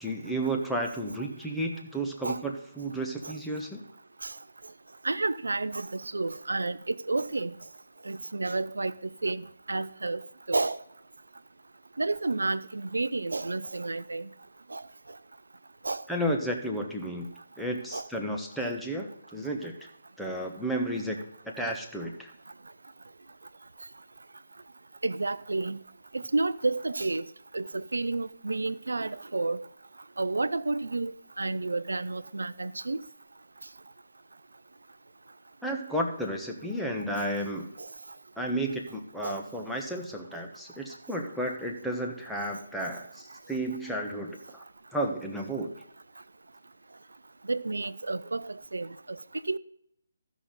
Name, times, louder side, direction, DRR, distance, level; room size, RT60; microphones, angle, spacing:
voice 1, 0.0-3.8 16.1-17.3 17.6-19.7 20.2-21.2 21.4-22.3 35.6-37.7 38.4-44.6 44.9-45.7, right 1 dB, ahead, 1.2 m, -32 dB
voice 2, 5.0-7.6 8.1-8.9 9.2-10.2 10.5-10.8 12.0-14.3 14.7-14.8 15.8-16.0 17.9-18.0 25.0-25.8 26.1-27.2 27.5-29.6 30.2-33.0 37.8-37.9 39.2-39.4 47.5-49.2 49.5-49.6, right 3 dB, 70° right, 0.5 m, -30 dB
15.0 x 6.1 x 3.9 m
figure-of-eight pair, 145°, 0 cm